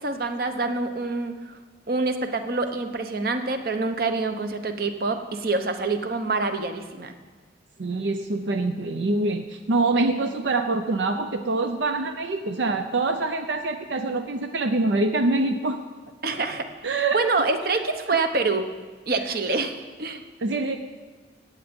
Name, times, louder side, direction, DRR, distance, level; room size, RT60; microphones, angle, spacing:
voice 1, 0.0-1.6 1.9-7.1 16.2-18.7 19.1-20.2, right 3 dB, 55° right, 7 dB, 0.9 m, -26 dB
voice 2, 7.8-15.8 16.3-16.4 16.8-17.2 18.1-18.2 20.4-20.8, right 2 dB, 80° right, 7 dB, 0.6 m, -25 dB
16.0 x 8.9 x 5.3 m, 1.4 s
head